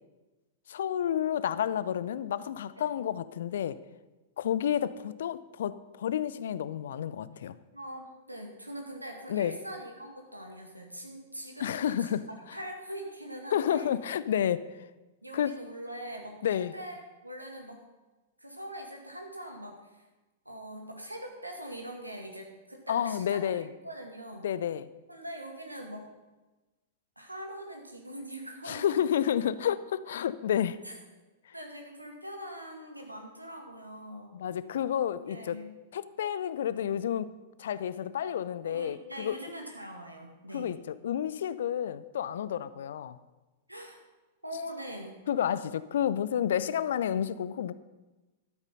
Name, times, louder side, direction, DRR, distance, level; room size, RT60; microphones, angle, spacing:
voice 1, 0.7-3.8 4.4-7.6 9.3-9.6 11.6-12.3 13.5-14.6 15.3-15.5 16.4-16.7 22.9-23.7 24.4-24.9 28.7-30.8 34.3-35.6 35.9-37.3 37.6-39.4 40.5-43.2 45.3-47.7, left 9 dB, 60° left, 16 dB, 0.5 m, -30 dB
voice 2, 7.7-12.1 12.5-13.9 15.2-17.0 17.2-17.8 18.4-20.0 20.5-24.5 25.1-26.1 27.2-29.0 30.8-30.9 31.5-34.4 35.2-35.7 38.7-40.8 43.7-44.0 44.4-45.2, equal, 90° right, 2 dB, 2.1 m, -42 dB
13.0 x 8.1 x 5.4 m, 1.1 s
figure-of-eight pair, 100°, 0 cm